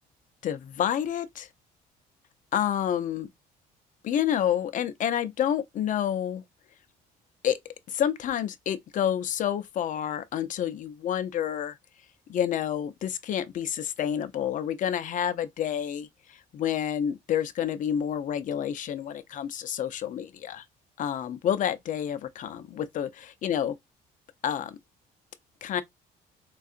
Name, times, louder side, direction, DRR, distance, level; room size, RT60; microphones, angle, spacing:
voice 1, 0.4-1.5 2.5-3.3 4.0-6.4 7.4-7.6 7.9-11.8 12.3-20.6 21.0-23.7 24.4-24.8 25.6-25.8, left 9 dB, 50° left, 0.6 m, -29 dB
3.6 x 2.3 x 2.4 m
cardioid pair, 110°, 17 cm